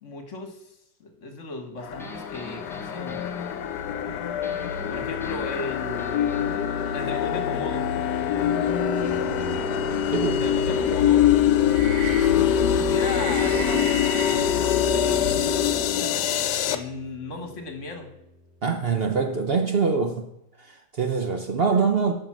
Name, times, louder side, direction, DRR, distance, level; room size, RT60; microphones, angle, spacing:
voice 1, 0.0-3.2 4.9-6.7 6.9-7.9 10.4-11.2 12.2-12.4 12.7-16.3 16.7-18.1, left 2 dB, 50° left, 5 dB, 1.6 m, -36 dB
sound 1, 1.8-16.8, left 9 dB, 80° left, 1.3 m, -24 dB
sound 2, 2.0-8.5 9.0-13.0 13.4-19.1, equal, ahead, 0.9 m, -43 dB
voice 2, 10.1-10.4 11.0-11.1 18.6-20.3 20.6-22.1, right 5 dB, 55° right, 5 dB, 0.6 m, -24 dB
sound 3, 10.5-15.8, left 2 dB, 80° right, 2.5 m, -33 dB
8.9 x 5.9 x 6.1 m, 0.83 s
omnidirectional pair, 1.8 m